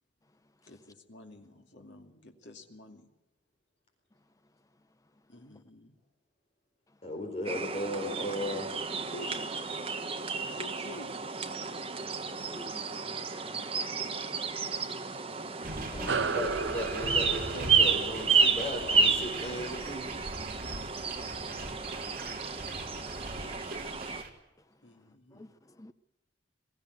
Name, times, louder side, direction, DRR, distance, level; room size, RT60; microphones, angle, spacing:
voice 1, 0.7-3.1 5.3-5.9 9.1-9.5 10.5-11.1 24.8-25.5, left 1 dB, 70° left, 2.5 m, -49 dB
voice 2, 7.0-8.7 16.3-20.1 23.9-24.0, left 1 dB, 35° left, 4.4 m, -36 dB
sound 1, 7.5-24.2, right 5 dB, 30° right, 1.5 m, -31 dB
voice 3, 12.4-12.8 14.6-14.8 15.8-16.4 25.3-25.9, left 1 dB, 20° left, 0.7 m, -47 dB
sound 2, 15.6-24.3, right 2 dB, 50° right, 4.1 m, -42 dB
sound 3, 16.1-20.9, right 5 dB, 70° right, 0.7 m, -36 dB
22.0 x 15.5 x 8.0 m
head